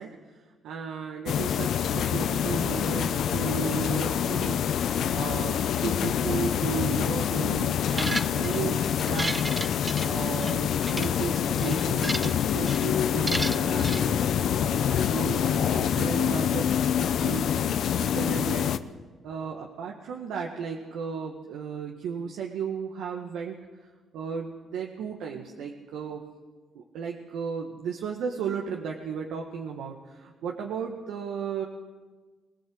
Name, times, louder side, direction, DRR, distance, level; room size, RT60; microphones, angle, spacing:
voice 1, 0.0-9.6 10.0-16.7 17.0-18.7 19.2-23.9 24.1-26.2 26.7-31.6, right 6 dB, 85° right, 1 dB, 1.9 m, -35 dB
sound 1, 1.3-18.8, left 9 dB, 70° left, 0.9 m, -26 dB
sound 2, 7.9-8.6 9.0-10.5 10.8-11.1 11.6-12.4 12.7-12.9 13.3-14.0, right 2 dB, 15° right, 0.8 m, -32 dB
23.0 x 17.0 x 8.0 m, 1.3 s
cardioid pair, 90°, 0 cm